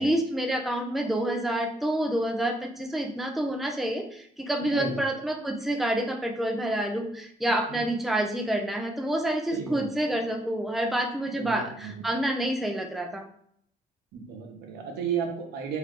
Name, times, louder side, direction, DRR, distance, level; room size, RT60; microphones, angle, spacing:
voice 1, 0.0-13.2, right 1 dB, ahead, 2 dB, 0.5 m, -28 dB
voice 2, 4.6-5.0 7.4-7.8 9.5-10.1 11.3-12.0 14.1-15.8, right 6 dB, 75° right, 3 dB, 0.9 m, -34 dB
3.7 x 2.8 x 3.6 m, 0.65 s
cardioid pair, 110°, 17 cm